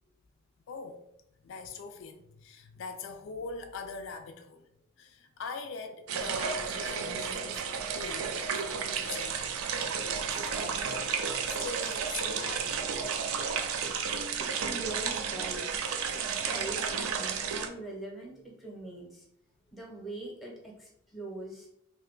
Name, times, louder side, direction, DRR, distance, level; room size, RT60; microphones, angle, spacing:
voice 1, 0.7-1.0 1.4-4.6 5.0-7.6 8.0-11.1 11.5-12.8, left 4 dB, 65° left, 0.3 m, -42 dB
sound 1, 6.1-17.7, right 6 dB, 85° right, 0.4 m, -32 dB
voice 2, 14.4-19.3 19.7-21.7, right 2 dB, ahead, 0.7 m, -43 dB
2.7 x 2.2 x 3.7 m
head